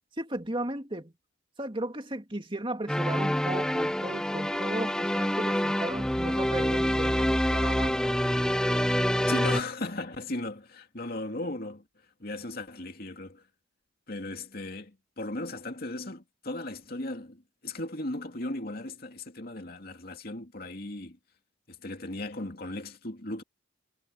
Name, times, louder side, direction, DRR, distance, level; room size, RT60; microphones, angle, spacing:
voice 1, 0.2-1.1 1.6-8.2, right 1 dB, 25° right, 2.6 m, -35 dB
sound 1, 2.9-9.6, equal, 5° left, 0.5 m, -26 dB
voice 2, 9.3-11.8 12.2-13.4 14.1-21.2 21.7-23.4, left 2 dB, 50° left, 2.6 m, -36 dB
head